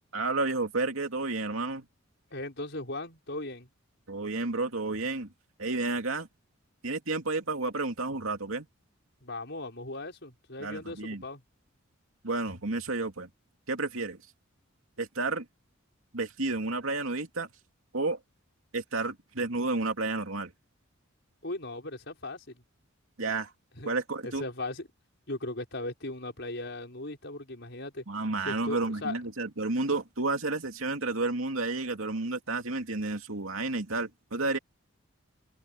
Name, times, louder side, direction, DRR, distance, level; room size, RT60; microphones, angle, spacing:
voice 1, 0.1-1.9 4.1-5.3 5.6-6.3 6.8-8.7 10.6-11.2 12.2-13.3 13.7-14.2 15.0-15.5 16.1-17.5 17.9-18.2 18.7-20.5 23.2-23.5 23.8-24.4 28.1-34.6, right 3 dB, 80° right, 2.5 m, -31 dB
voice 2, 2.3-3.7 9.2-11.4 21.4-22.6 23.8-23.9 24.2-24.9 25.3-28.0 28.5-29.2, left 2 dB, 55° left, 5.8 m, -38 dB
open air
head